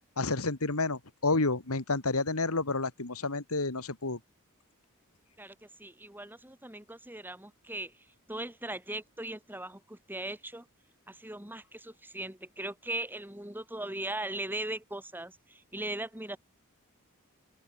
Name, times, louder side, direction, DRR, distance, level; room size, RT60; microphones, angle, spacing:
voice 1, 0.2-4.2, left 3 dB, 70° left, 2.1 m, -30 dB
voice 2, 5.4-7.9 8.3-10.6 11.1-16.4, right 1 dB, 10° right, 4.6 m, -39 dB
open air
head